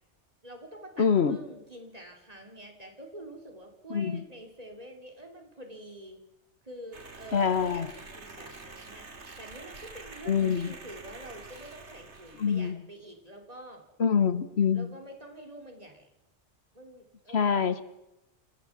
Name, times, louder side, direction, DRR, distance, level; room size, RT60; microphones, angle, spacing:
voice 1, 0.4-6.2 6.6-9.1 9.4-13.8 14.7-16.1 16.7-17.5, right 1 dB, 35° right, 3 dB, 3.3 m, -47 dB
voice 2, 1.0-1.4 3.9-4.2 7.3-7.9 10.3-10.7 12.4-12.8 14.0-14.9 17.3-17.8, left 6 dB, 65° left, 13 dB, 1.3 m, -25 dB
sound 1, 6.9-12.7, right 3 dB, 80° right, 2.5 m, -47 dB
28.0 x 14.5 x 7.2 m, 0.91 s
omnidirectional pair, 1.2 m